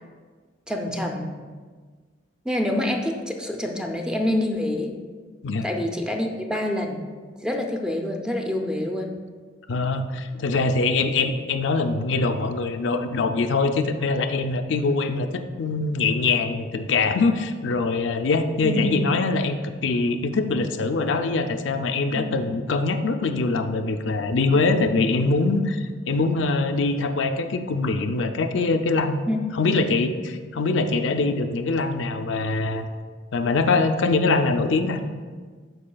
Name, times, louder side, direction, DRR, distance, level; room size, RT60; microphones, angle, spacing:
voice 1, 0.7-1.3 2.4-4.9 5.6-7.0 7.4-9.1 18.6-18.9 22.1-22.3 29.3-29.4, left 1 dB, 5° right, 2 dB, 0.6 m, -26 dB
voice 2, 9.7-29.2 29.5-32.9 33.3-35.0, left 3 dB, 75° left, 6 dB, 0.5 m, -23 dB
12.5 x 4.7 x 2.3 m, 1.5 s
head